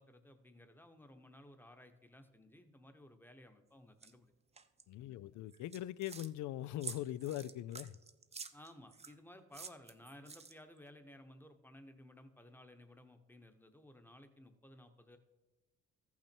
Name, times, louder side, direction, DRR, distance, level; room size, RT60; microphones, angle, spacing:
voice 1, 0.0-4.3 5.0-5.2 8.5-15.2, left 1 dB, 5° left, 1.0 m, -57 dB
sound 1, 4.0-4.1 4.6-4.8 5.5-6.3 6.8-9.1 9.5-10.8, right 5 dB, 20° right, 0.6 m, -49 dB
voice 2, 4.9-8.0, left 13 dB, 75° left, 0.4 m, -41 dB
14.0 x 5.9 x 4.4 m
cardioid pair, 90°, 30 cm